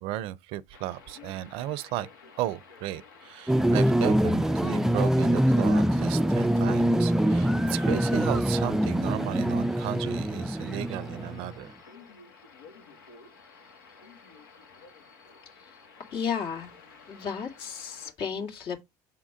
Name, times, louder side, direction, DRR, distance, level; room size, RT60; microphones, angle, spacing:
voice 1, 0.0-2.1 2.4-11.7, right 14 dB, 65° right, 0.6 m, -34 dB
sound 1, 0.7-18.1, left 5 dB, 90° left, 1.7 m, -52 dB
sound 2, 3.5-11.5, right 1 dB, 5° right, 0.4 m, -24 dB
voice 2, 16.1-16.7 17.1-18.8, left 6 dB, 60° left, 2.4 m, -33 dB
7.1 x 3.7 x 4.9 m
hypercardioid pair, 75°, 10 cm